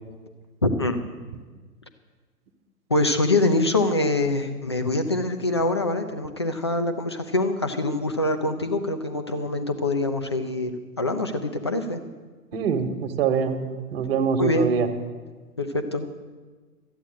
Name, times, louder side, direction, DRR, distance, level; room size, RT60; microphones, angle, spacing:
voice 1, 0.6-1.0 2.9-10.7 11.0-12.0 14.4-14.7 15.6-16.2, left 2 dB, 20° left, 7 dB, 0.4 m, -24 dB
voice 2, 12.5-13.6 13.9-14.9, right 6 dB, 40° right, 7 dB, 1.4 m, -24 dB
13.0 x 8.8 x 8.6 m, 1.4 s
figure-of-eight pair, 125°, 47 cm